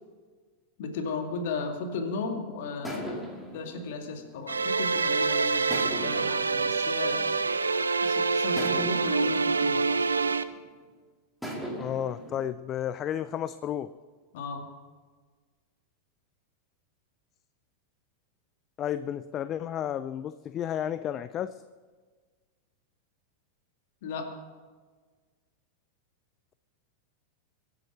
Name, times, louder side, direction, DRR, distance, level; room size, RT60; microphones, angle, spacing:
voice 1, 0.8-3.3 3.5-7.3 8.0-9.9 14.3-14.7 24.0-24.4, left 3 dB, 55° left, 5 dB, 2.2 m, -35 dB
sound 1, 2.8-5.1 5.7-7.8 8.6-10.8 11.4-12.4, right 1 dB, 5° left, 2.6 m, -40 dB
sound 2, 4.5-10.4, right 4 dB, 75° right, 0.6 m, -26 dB
voice 2, 11.8-13.9 18.8-21.6, left 10 dB, 30° left, 14 dB, 0.4 m, -32 dB
23.0 x 8.7 x 6.1 m, 1.5 s
figure-of-eight pair, 90°, 0 cm